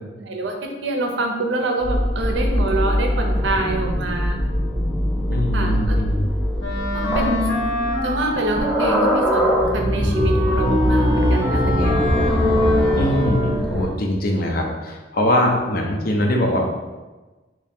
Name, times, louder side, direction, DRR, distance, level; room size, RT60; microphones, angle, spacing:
voice 1, 0.2-0.5 0.8-4.4 5.5-6.0 6.9-7.4 8.0-12.0, right 2 dB, 75° right, 2 dB, 0.6 m, -25 dB
sound 1, 1.8-13.9, equal, ahead, 0.4 m, -21 dB
voice 2, 5.3-6.4 12.8-16.6, left 1 dB, 55° left, 1 dB, 0.6 m, -22 dB
Wind instrument woodwind instrument, 6.6-13.8, equal, 90° left, 0.9 m, -26 dB
2.9 x 2.7 x 3.5 m, 1.2 s
head